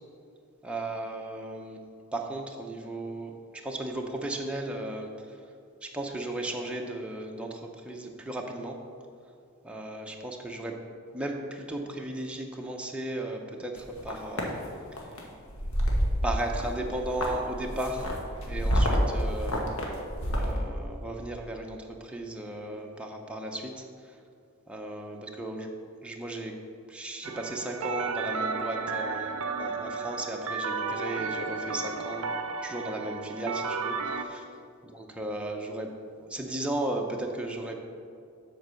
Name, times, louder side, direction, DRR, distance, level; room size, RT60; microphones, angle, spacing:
voice 1, 0.6-1.8 2.1-5.4 5.8-8.8 9.6-10.7 11.1-14.6 16.2-19.9 20.3-24.2 24.7-25.7 26.0-26.6 26.9-32.3 32.6-34.4 34.9-35.9 36.2-37.8, right 1 dB, 5° right, 0 dB, 0.6 m, -35 dB
sound 1, 13.8-14.5 15.0-15.2 15.5-16.6 16.9-20.6, equal, 85° left, 1.3 m, -28 dB
sound 2, 27.2-34.2, right 4 dB, 80° right, 0.6 m, -33 dB
7.8 x 4.6 x 6.3 m, 2.4 s
head